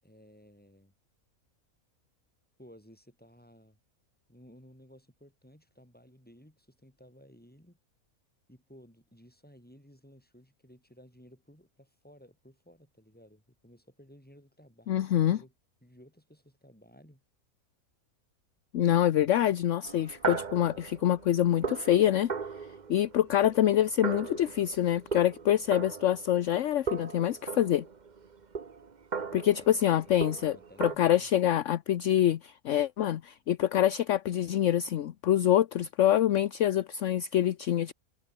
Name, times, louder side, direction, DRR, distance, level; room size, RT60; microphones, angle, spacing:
voice 1, 0.0-0.9 2.6-3.8 4.3-7.8 8.5-15.5 15.8-17.2 30.1-31.3, equal, 5° left, 7.8 m, -56 dB
voice 2, 14.9-15.4 18.7-22.3 22.9-27.8 29.3-37.9, left 11 dB, 65° left, 1.0 m, -26 dB
sound 1, 19.8-26.6 26.9-30.9, right 5 dB, 35° right, 1.1 m, -38 dB
omnidirectional pair, 1.5 m